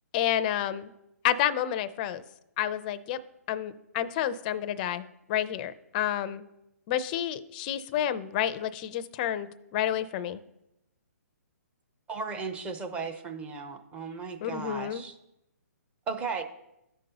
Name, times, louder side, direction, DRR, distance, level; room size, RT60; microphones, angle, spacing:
voice 1, 0.1-0.9 1.2-2.2 2.6-3.2 3.5-6.5 6.9-10.4 14.4-15.0, left 11 dB, 30° left, 12 dB, 0.5 m, -30 dB
voice 2, 12.1-15.1 16.1-16.4, right 5 dB, 15° right, 7 dB, 0.7 m, -35 dB
14.0 x 5.2 x 2.9 m, 0.89 s
hypercardioid pair, 145°, 9 cm